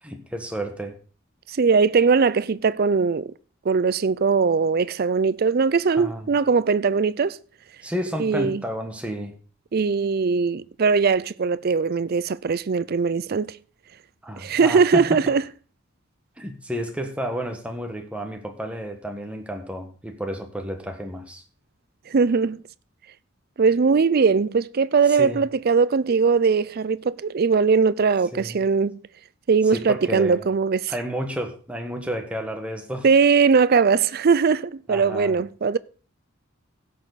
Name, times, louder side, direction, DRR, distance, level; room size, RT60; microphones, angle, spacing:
voice 1, 0.0-0.9 6.0-6.3 7.8-9.3 14.2-15.2 16.4-21.4 25.1-25.4 28.3-28.6 29.7-30.4 30.9-33.1 34.9-35.4, equal, 5° right, 1.5 m, -31 dB
voice 2, 1.5-3.3 3.6-7.4 8.2-8.6 9.7-13.6 14.4-15.4 22.1-22.6 23.6-29.0 29.5-30.9 33.0-35.8, right 5 dB, 50° right, 0.4 m, -20 dB
16.0 x 6.8 x 4.1 m
head